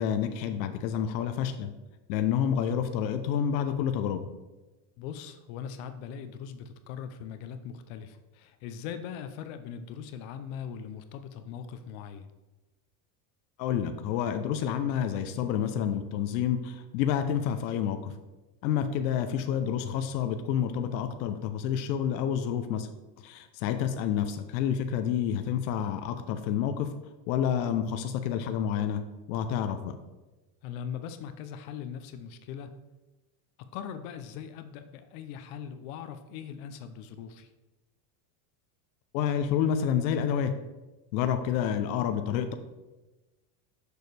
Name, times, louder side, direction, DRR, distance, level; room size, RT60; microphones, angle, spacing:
voice 1, 0.0-1.7 2.1-4.2 13.6-18.1 18.6-22.9 23.2-26.9 27.3-29.0 29.3-30.0 39.1-40.5 41.1-42.5, left 9 dB, 90° left, 7 dB, 0.8 m, -29 dB
voice 2, 5.0-12.3 30.6-32.8 33.6-37.5, left 8 dB, 60° left, 9 dB, 0.6 m, -40 dB
6.8 x 6.3 x 3.3 m, 1.1 s
cardioid pair, 160°, 50 cm